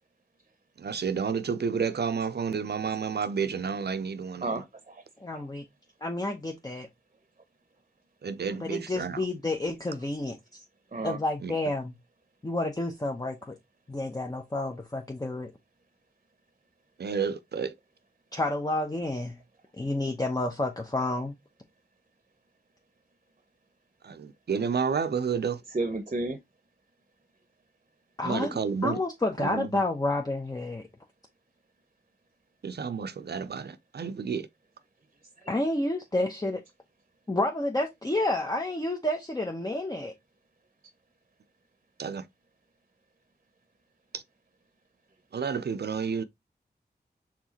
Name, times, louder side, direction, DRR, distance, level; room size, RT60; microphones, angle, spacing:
voice 1, 0.8-4.5 8.2-9.2 11.4-11.5 17.0-17.7 24.2-25.6 28.3-29.0 29.4-29.7 32.6-34.5 42.0-42.2 45.3-46.2, right 6 dB, 70° right, 0.5 m, -30 dB
voice 2, 4.4-5.0 5.3-5.4 8.6-8.7 10.9-11.2 25.7-26.4, right 2 dB, 45° right, 0.7 m, -32 dB
voice 3, 5.2-5.6 6.0-6.9 8.4-10.6 11.0-12.0 12.4-13.6 13.9-15.5 18.3-19.4 19.8-21.4 28.2-30.8 35.5-36.6 37.3-40.1, left 2 dB, 20° left, 0.8 m, -30 dB
4.7 x 3.6 x 2.9 m
wide cardioid pair, 60°, 17 cm